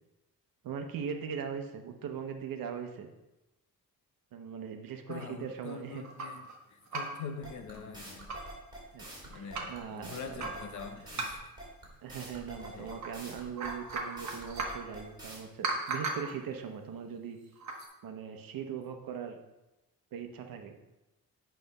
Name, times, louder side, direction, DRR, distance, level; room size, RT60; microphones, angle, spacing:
voice 1, 0.6-3.1 4.3-6.0 8.9-10.5 12.0-17.4 18.0-19.4 20.1-20.7, right 7 dB, 80° right, 5 dB, 1.0 m, -40 dB
voice 2, 5.1-8.3 9.3-11.4 12.6-13.0, left 6 dB, 60° left, 6 dB, 0.8 m, -44 dB
sound 1, 5.1-6.5 6.8-7.3 7.7-7.8 8.1-8.6 9.0-9.8 10.4-11.6 12.6-13.1 13.4-14.9 15.6-16.4 17.5-17.9, right 3 dB, 55° right, 1.1 m, -38 dB
sound 2, 7.4-15.4, right 1 dB, 15° right, 2.4 m, -46 dB
8.7 x 3.4 x 5.3 m, 1.0 s
wide cardioid pair, 170°, 34 cm